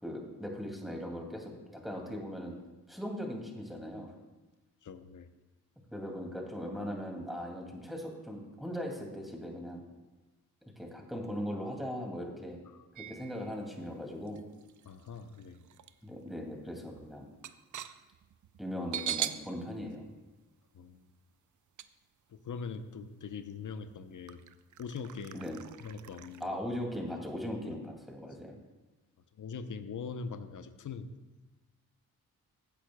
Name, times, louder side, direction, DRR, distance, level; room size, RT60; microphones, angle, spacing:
voice 1, 0.0-2.5 2.9-4.1 5.9-9.8 10.8-12.6 12.9-14.4 16.0-17.3 18.6-20.1 25.3-25.6 26.4-28.6, equal, ahead, 1 dB, 2.4 m, -39 dB
voice 2, 4.8-5.3 12.7-12.9 14.8-15.6 20.7-21.0 22.3-24.4 24.8-25.5 25.8-26.6 27.7-27.8 29.4-31.1, left 5 dB, 55° left, 10 dB, 0.8 m, -42 dB
sound 1, 12.9-13.7 14.3-15.9 16.3-16.4 16.8-19.5 19.8-19.9 21.8-21.9 22.7-22.8 23.4-23.5 24.3-26.5, right 10 dB, 55° right, 0.5 m, -41 dB
15.5 x 8.4 x 2.3 m, 1.1 s
supercardioid pair, 50°, 37 cm